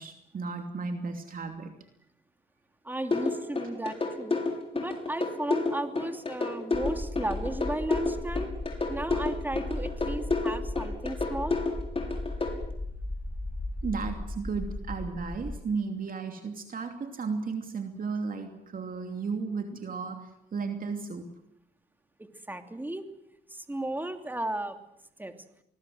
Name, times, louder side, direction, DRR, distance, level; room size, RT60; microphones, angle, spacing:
voice 1, 0.0-1.7 13.8-21.3, right 4 dB, 45° right, 5 dB, 2.9 m, -34 dB
voice 2, 2.8-4.4 4.7-8.5 8.9-11.6 22.5-23.1 23.5-24.8 25.2-25.3, right 1 dB, 10° right, 7 dB, 2.9 m, -34 dB
sound 1, 3.1-12.5, left 3 dB, 30° left, 6.5 m, -29 dB
sound 2, 6.7-15.6, left 2 dB, 10° left, 2.2 m, -36 dB
26.0 x 20.0 x 8.0 m, 0.77 s
cardioid pair, 90°, 20 cm